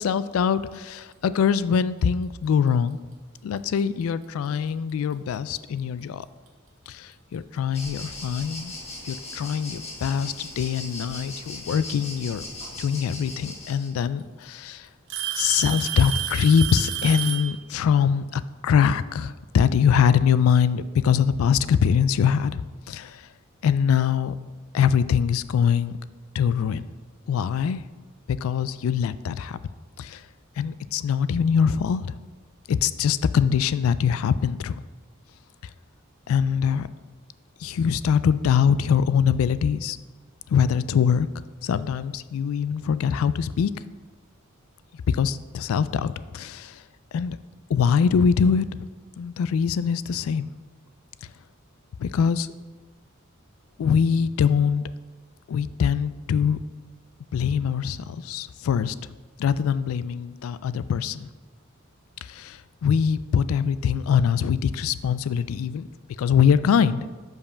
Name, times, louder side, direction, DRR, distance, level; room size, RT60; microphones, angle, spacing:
voice 1, 0.0-3.0 3.4-6.3 6.9-8.7 9.0-12.4 12.8-14.9 15.4-22.6 22.9-23.3 23.6-24.3 24.7-25.9 26.3-26.8 27.3-27.8 28.3-29.6 30.0-30.2 30.6-32.1 32.7-34.8 36.3-36.9 37.6-40.0 40.5-41.3 41.6-43.7 45.1-46.8 47.1-47.4 47.7-48.7 49.2-50.5 52.0-52.5 53.8-54.9 55.5-56.6 57.3-59.0 59.4-61.3 62.2-65.9 66.2-67.1, left 7 dB, 70° left, 16 dB, 0.3 m, -23 dB
Alarm / Tick-tock, 3.6-3.8 4.7-4.8 5.6-5.7 7.3-7.4 8.7-8.8 10.0-10.5 12.2-12.3 13.5-13.6 14.0-14.4 15.1-17.5, right 11 dB, 65° right, 0.9 m, -30 dB
sound 1, 7.7-13.9, left 2 dB, 30° left, 1.3 m, -39 dB
5.3 x 4.8 x 5.6 m, 1.3 s
head